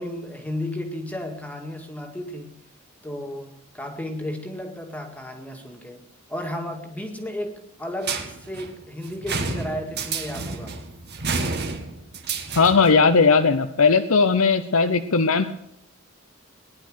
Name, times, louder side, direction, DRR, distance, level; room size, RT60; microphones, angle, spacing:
voice 1, 0.0-2.6 3.0-6.0 6.3-10.8, left 1 dB, 5° left, 3 dB, 2.0 m, -33 dB
sound 1, 8.0-13.0, right 4 dB, 50° right, 1.9 m, -30 dB
voice 2, 12.6-15.5, left 4 dB, 90° left, 7 dB, 0.8 m, -18 dB
19.0 x 10.5 x 6.4 m, 0.83 s
head